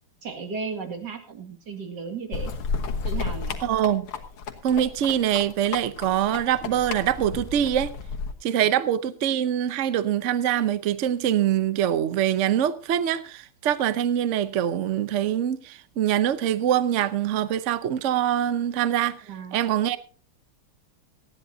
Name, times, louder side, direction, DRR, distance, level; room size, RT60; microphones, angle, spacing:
voice 1, 0.2-2.5 3.0-3.6 8.6-8.7 19.2-19.6, right 5 dB, 55° right, 2.6 m, -35 dB
sound 1, 2.3-8.3, left 4 dB, 90° left, 2.3 m, -32 dB
voice 2, 3.6-4.1 4.6-7.9 8.4-19.2 19.5-20.0, right 10 dB, 85° right, 0.6 m, -24 dB
19.0 x 14.5 x 2.7 m
omnidirectional pair, 2.3 m